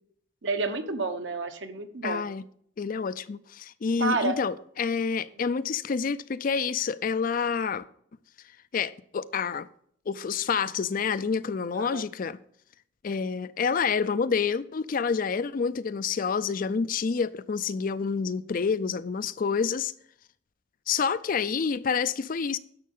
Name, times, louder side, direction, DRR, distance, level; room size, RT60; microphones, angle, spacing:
voice 1, 0.4-2.2 4.0-4.4 11.8-12.0, right 3 dB, 65° right, 1.1 m, -30 dB
voice 2, 2.0-2.5 2.8-7.8 8.7-9.7 10.1-12.4 13.0-19.9 20.9-22.6, left 5 dB, 45° left, 0.4 m, -28 dB
10.5 x 6.5 x 5.5 m
head